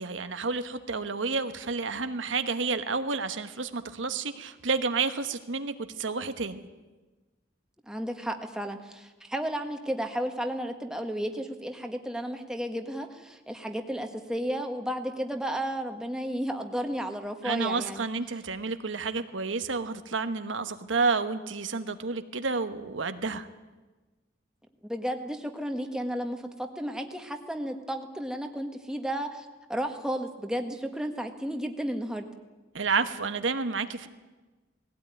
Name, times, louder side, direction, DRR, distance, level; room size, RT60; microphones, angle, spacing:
voice 1, 0.0-6.6 17.4-23.5 32.7-34.1, right 4 dB, 85° right, 9 dB, 1.2 m, -30 dB
voice 2, 7.9-18.1 24.8-32.3, equal, 5° right, 4 dB, 1.5 m, -33 dB
19.5 x 16.5 x 9.5 m, 1.2 s
head